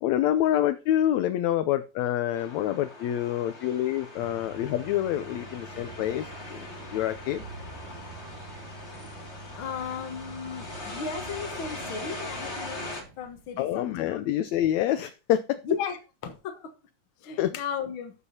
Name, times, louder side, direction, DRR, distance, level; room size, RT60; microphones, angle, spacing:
voice 1, 0.0-6.7 6.9-7.4 13.6-15.6 17.4-17.5, left 12 dB, 75° left, 1.7 m, -27 dB
sound 1, 2.4-13.0, left 2 dB, 25° left, 2.2 m, -41 dB
sound 2, 4.2-12.9, right 2 dB, 35° right, 2.6 m, -47 dB
sound 3, 5.7-14.0, right 5 dB, 70° right, 2.7 m, -50 dB
voice 2, 9.6-12.8 13.2-14.2 15.6-16.7 17.2-18.1, left 7 dB, 50° left, 1.7 m, -35 dB
12.5 x 8.2 x 2.8 m
omnidirectional pair, 3.6 m